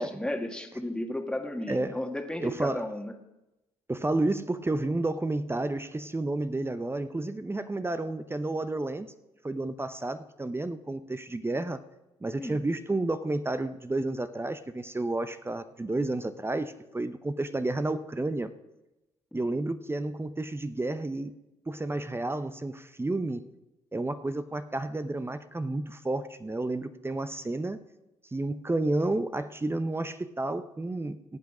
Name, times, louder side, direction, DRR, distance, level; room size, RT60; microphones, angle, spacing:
voice 1, 0.0-3.1 12.4-12.5 19.3-19.4, left 1 dB, 5° left, 4 dB, 1.8 m, -34 dB
voice 2, 1.7-2.0 2.4-2.9 3.9-9.1 9.4-11.8 12.2-18.5 19.3-21.3 21.7-23.4 23.9-27.8 28.3-31.2, right 2 dB, 15° right, 11 dB, 0.8 m, -31 dB
17.5 x 8.1 x 5.0 m, 0.98 s
hypercardioid pair, 50°, 14 cm